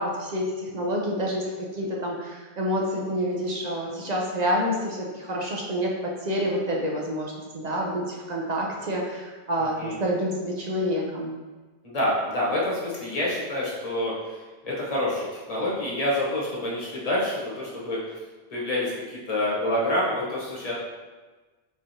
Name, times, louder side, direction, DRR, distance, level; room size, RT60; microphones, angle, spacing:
voice 1, 0.0-11.3, equal, 50° right, -2 dB, 0.5 m, -28 dB
voice 2, 11.8-18.2 18.5-20.7, left 1 dB, 35° left, -5 dB, 1.0 m, -27 dB
4.0 x 3.0 x 2.7 m, 1.3 s
omnidirectional pair, 1.2 m